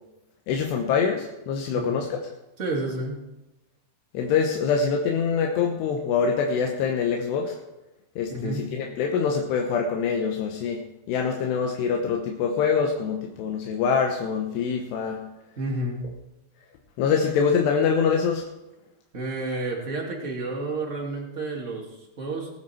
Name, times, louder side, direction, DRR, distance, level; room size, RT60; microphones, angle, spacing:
voice 1, 0.5-2.2 4.1-7.6 8.2-10.8 11.1-15.2 17.0-18.5, left 6 dB, 90° left, 2 dB, 3.2 m, -24 dB
voice 2, 2.6-3.2 8.3-8.6 15.6-16.1 19.1-22.5, right 2 dB, 25° right, -1 dB, 1.8 m, -30 dB
18.5 x 9.3 x 4.4 m, 0.97 s
omnidirectional pair, 4.7 m